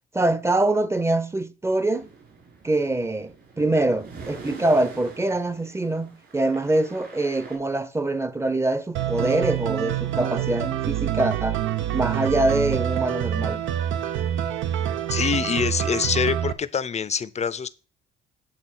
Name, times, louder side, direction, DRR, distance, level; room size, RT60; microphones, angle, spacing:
voice 1, 0.1-2.1 2.6-11.6 11.9-13.6, right 2 dB, 15° right, 0.7 m, -24 dB
sound 1, 1.9-7.6, right 4 dB, 55° right, 3.9 m, -44 dB
sound 2, 8.9-16.5, right 11 dB, 75° right, 0.8 m, -26 dB
voice 2, 15.1-17.7, left 6 dB, 35° left, 0.6 m, -25 dB
8.8 x 3.7 x 6.0 m
cardioid pair, 90°, 20 cm